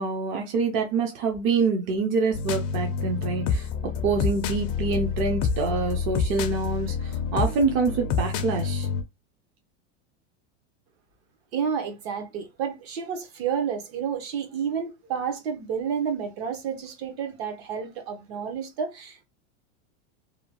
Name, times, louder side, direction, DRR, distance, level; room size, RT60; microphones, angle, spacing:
voice 1, 0.0-8.9, right 4 dB, 35° right, 0.5 m, -26 dB
sound 1, 2.3-9.0, left 6 dB, 45° left, 0.4 m, -28 dB
voice 2, 11.5-19.2, right 7 dB, 60° right, 0.9 m, -30 dB
2.8 x 2.2 x 2.8 m
supercardioid pair, 140°, 36 cm